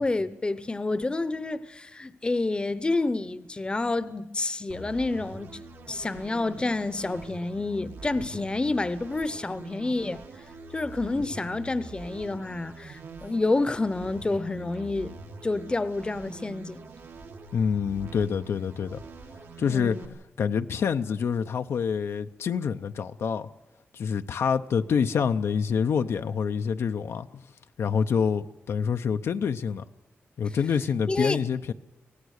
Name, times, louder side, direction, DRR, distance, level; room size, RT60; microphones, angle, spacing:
voice 1, 0.0-5.5 5.9-10.2 10.7-15.1 15.4-16.8 19.7-20.2 31.1-31.4, left 2 dB, 20° left, 0.8 m, -29 dB
sound 1, 4.7-20.1, right 2 dB, 85° right, 2.4 m, -44 dB
voice 2, 17.5-19.0 19.6-20.0 20.4-23.5 23.9-27.4 27.8-29.8 30.4-31.7, left 6 dB, 80° left, 0.7 m, -27 dB
24.5 x 17.5 x 6.5 m
wide cardioid pair, 115°, 4 cm